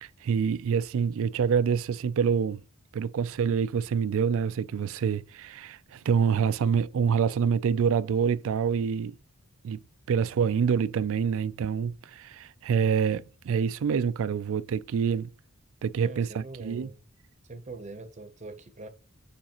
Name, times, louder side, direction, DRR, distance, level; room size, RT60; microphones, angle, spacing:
voice 1, 0.0-2.6 2.9-9.1 9.6-9.8 10.1-15.3 15.8-16.9, right 6 dB, 65° right, 0.3 m, -26 dB
voice 2, 16.0-17.0 17.5-18.9, right 3 dB, 30° right, 0.7 m, -43 dB
7.1 x 5.0 x 2.9 m
head